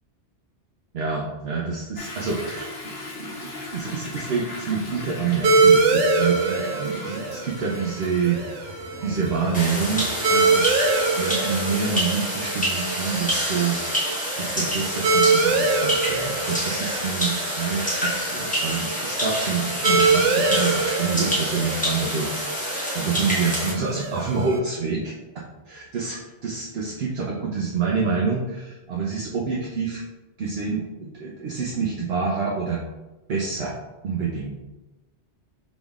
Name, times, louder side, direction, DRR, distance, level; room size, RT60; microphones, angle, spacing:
voice 1, 0.9-2.7 3.1-10.8 11.2-13.8 14.4-30.0 30.4-32.8 33.3-33.8 34.0-34.5, right 5 dB, 65° right, -2 dB, 0.8 m, -27 dB
Toilet flush / Drip / Trickle dribble, 2.0-12.1, left 2 dB, 80° left, 1.2 m, -38 dB
sound 1, 5.4-24.6, right 3 dB, 90° right, 1.0 m, -25 dB
sound 2, 9.5-23.7, equal, 5° left, 1.1 m, -27 dB
5.1 x 3.6 x 2.4 m, 1.1 s
omnidirectional pair, 1.2 m